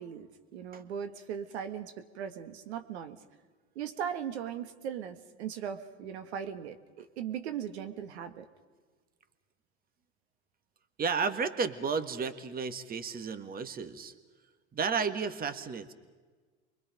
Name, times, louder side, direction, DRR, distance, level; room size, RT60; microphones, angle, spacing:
voice 1, 0.0-3.2 3.7-8.5, right 8 dB, 75° right, 9 dB, 1.7 m, -38 dB
voice 2, 11.0-14.1 14.7-15.9, right 5 dB, 25° right, 11 dB, 1.6 m, -32 dB
28.5 x 24.0 x 5.2 m, 1.4 s
hypercardioid pair, 95°, 33 cm